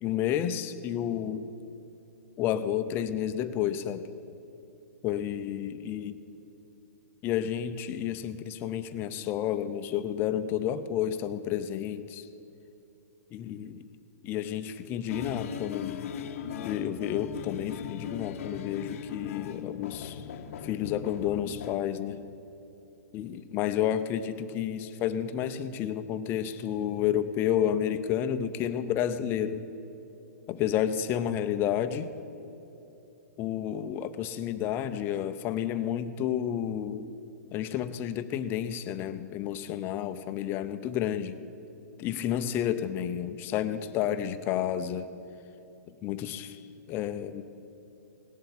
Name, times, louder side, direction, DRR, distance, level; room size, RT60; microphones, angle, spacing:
voice 1, 0.0-1.4 2.4-4.1 5.0-6.1 7.2-12.3 13.3-13.8 14.2-16.1 16.6-20.2 20.6-22.2 23.1-29.6 30.5-32.1 33.4-37.1 37.5-41.4 42.0-45.1 45.9-47.4, left 10 dB, 25° left, 11 dB, 0.6 m, -31 dB
sound 1, 15.1-21.8, left 8 dB, 55° left, 0.8 m, -39 dB
18.0 x 7.9 x 8.4 m, 2.9 s
hypercardioid pair, 150°, 9 cm